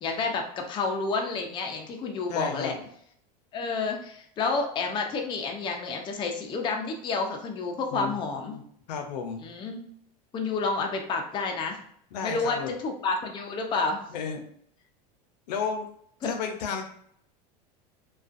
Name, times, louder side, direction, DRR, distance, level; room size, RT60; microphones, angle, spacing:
voice 1, 0.0-2.7 3.5-8.5 9.4-9.8 10.3-11.8 12.2-14.0 16.2-16.3, left 4 dB, 25° left, 2 dB, 0.4 m, -30 dB
voice 2, 2.3-2.9 7.9-8.1 8.4-8.6 8.9-9.5 12.1-12.7 14.1-14.4 15.5-15.9 16.2-16.8, left 6 dB, 80° left, 5 dB, 0.6 m, -32 dB
2.4 x 2.2 x 2.5 m, 0.66 s
supercardioid pair, 115°, 21 cm